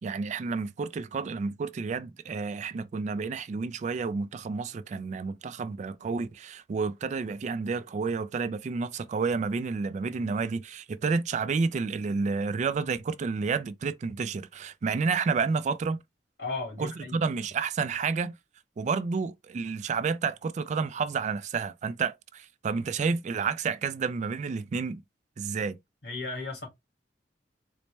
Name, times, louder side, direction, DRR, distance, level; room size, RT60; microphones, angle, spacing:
voice 1, 0.0-16.0 16.8-18.3 18.8-25.0 25.4-25.8, right 5 dB, 40° right, 0.3 m, -30 dB
voice 2, 16.4-17.2 26.0-26.7, left 3 dB, 70° left, 1.9 m, -35 dB
4.1 x 2.0 x 3.2 m
head